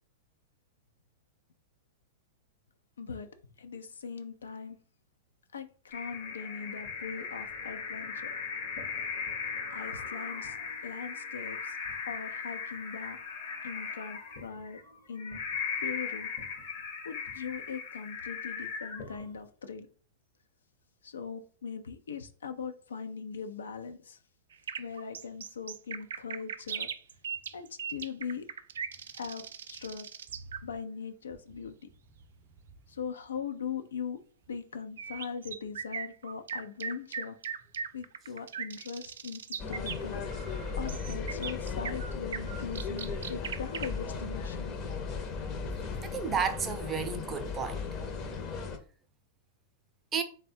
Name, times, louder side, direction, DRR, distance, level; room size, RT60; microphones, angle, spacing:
voice 1, 3.0-3.3 3.6-4.8 5.5-8.3 9.7-10.6 10.8-11.8 12.1-13.2 13.6-14.8 15.1-15.4 15.8-16.3 17.0-19.9 21.0-24.2 24.8-26.9 27.5-28.5 29.1-30.1 30.6-31.9 32.9-34.2 34.5-37.4 37.9-40.2 40.8-44.7, left 6 dB, 80° left, 0.5 m, -40 dB
sound 1, 5.9-19.4, left 6 dB, 55° left, 0.9 m, -38 dB
sound 2, 24.5-30.6 35.0-44.1, right 7 dB, 75° right, 0.3 m, -39 dB
sound 3, 39.6-48.8, left 5 dB, 35° left, 0.7 m, -36 dB
voice 2, 46.0-47.8 50.1-50.2, right 6 dB, 25° right, 0.6 m, -32 dB
3.3 x 2.2 x 4.3 m
hypercardioid pair, 100°, 0 cm